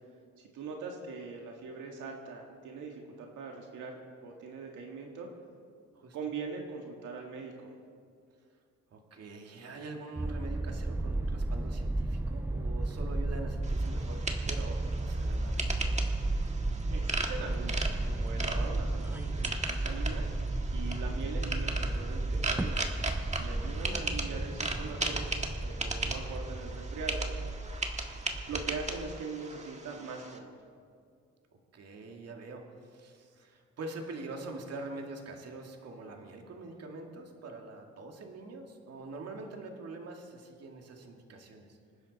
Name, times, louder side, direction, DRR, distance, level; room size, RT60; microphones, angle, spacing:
voice 1, 0.5-4.0 4.2-5.3 6.1-7.7 16.9-20.3 20.7-22.8 23.2-25.3 25.6-27.2 28.5-30.6, right 4 dB, 80° right, 1 dB, 1.8 m, -41 dB
voice 2, 8.9-16.1 26.0-26.3 31.5-41.8, right 2 dB, 55° right, 2 dB, 2.2 m, -44 dB
sound 1, 10.2-29.2, right 2 dB, 5° right, 0.4 m, -33 dB
sound 2, 13.6-30.4, right 2 dB, 25° right, 1.6 m, -38 dB
26.0 x 10.0 x 4.2 m, 2.2 s
cardioid pair, 90°, 30 cm